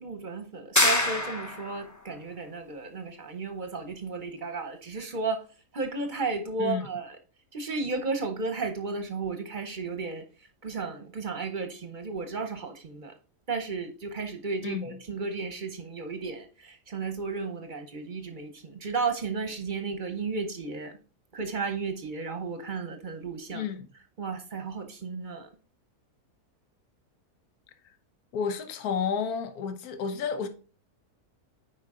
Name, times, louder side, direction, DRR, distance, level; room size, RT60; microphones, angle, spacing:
voice 1, 0.0-5.5 5.7-7.2 7.5-13.1 13.5-21.0 21.3-23.7 24.2-25.5, right 4 dB, 35° right, 0.9 m, -34 dB
sound 1, 0.8-1.8, left 2 dB, 15° left, 0.6 m, -25 dB
voice 2, 23.5-23.9 28.3-30.5, left 6 dB, 75° left, 1.3 m, -31 dB
8.5 x 5.0 x 3.8 m
omnidirectional pair, 1.6 m